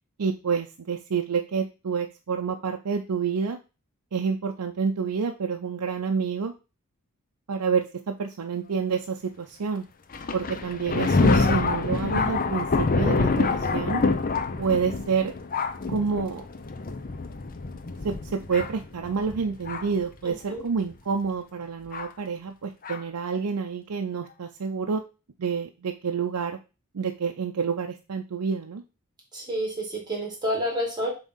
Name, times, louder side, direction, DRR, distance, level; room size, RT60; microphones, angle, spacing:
voice 1, 0.2-3.6 4.1-6.5 7.5-9.9 10.3-14.0 14.6-15.3 15.9-16.4 18.0-25.0 25.4-26.6 26.9-28.8, right 5 dB, 85° right, 4 dB, 0.6 m, -28 dB
Thunder, 10.1-20.0 20.8-20.9 21.9-22.1 22.8-23.0, left 3 dB, 40° left, 0.6 m, -26 dB
voice 2, 20.2-20.6 29.3-31.1, equal, 20° right, -1 dB, 2.4 m, -29 dB
7.2 x 3.1 x 5.5 m, 0.31 s
head